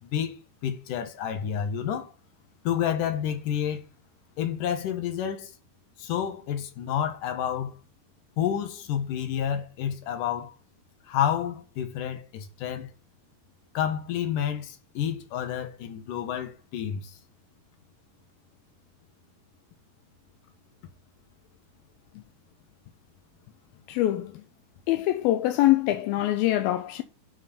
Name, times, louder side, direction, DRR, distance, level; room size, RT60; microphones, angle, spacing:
voice 1, 0.0-2.1 2.6-3.9 4.4-5.5 6.0-7.7 8.4-10.6 11.1-12.9 13.7-17.2, left 9 dB, 65° left, 2.6 m, -29 dB
voice 2, 23.9-24.5 24.9-27.0, left 15 dB, 80° left, 2.3 m, -24 dB
9.5 x 4.5 x 5.1 m
omnidirectional pair, 4.5 m